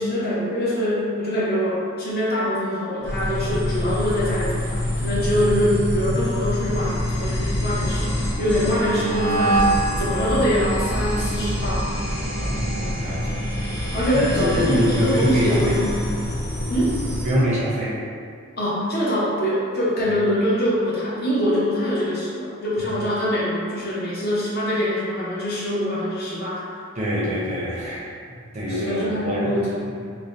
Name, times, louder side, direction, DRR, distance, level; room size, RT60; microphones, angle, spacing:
voice 1, 0.0-8.1 8.4-9.7 10.0-11.8 13.9-16.0 16.7-17.0 18.6-26.6 28.7-30.0, equal, 45° left, -7 dB, 0.6 m, -24 dB
sound 1, 3.0-17.4, equal, 70° left, 1.2 m, -25 dB
voice 2, 12.4-13.8 14.1-15.9 17.2-18.0 27.0-28.0 28.5-29.6, equal, 30° right, -7 dB, 0.5 m, -24 dB
2.5 x 2.1 x 3.2 m, 2.2 s
head